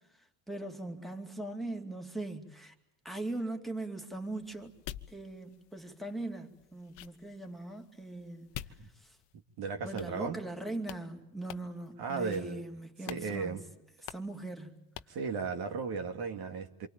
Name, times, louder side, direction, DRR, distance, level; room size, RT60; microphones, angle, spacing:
voice 1, 0.5-2.7 3.0-4.7 5.1-8.6 9.8-13.6 14.0-14.8, right 2 dB, ahead, 2.6 m, -40 dB
sound 1, 4.1-9.4 10.0-10.6 10.8-11.0 11.5-11.9 12.3-12.7 13.1-13.3 13.5-13.6 14.1-14.4 15.0-15.2, left 14 dB, 65° left, 1.1 m, -48 dB
voice 2, 9.6-10.4 12.0-12.6 13.0-13.6 15.1-16.9, right 5 dB, 55° right, 2.4 m, -35 dB
27.5 x 24.0 x 8.9 m
supercardioid pair, 95°, 46 cm